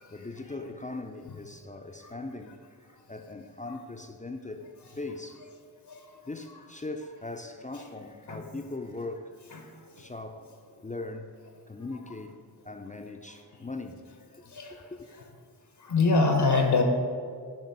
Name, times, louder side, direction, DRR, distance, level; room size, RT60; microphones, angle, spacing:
voice 1, 0.1-2.6 2.9-4.6 5.0-5.4 6.3-9.3 10.0-10.6 10.8-11.3 11.7-12.4 12.6-14.0 14.3-15.1, left 2 dB, 20° left, 0.5 m, -40 dB
voice 2, 5.9-6.2 7.7-7.8 8.3-8.4 9.5-10.1 13.6-13.7 14.4-14.9 15.2-15.3 15.8-16.8, left 3 dB, 70° left, 0.9 m, -27 dB
8.7 x 3.0 x 5.9 m
cardioid pair, 50°, 41 cm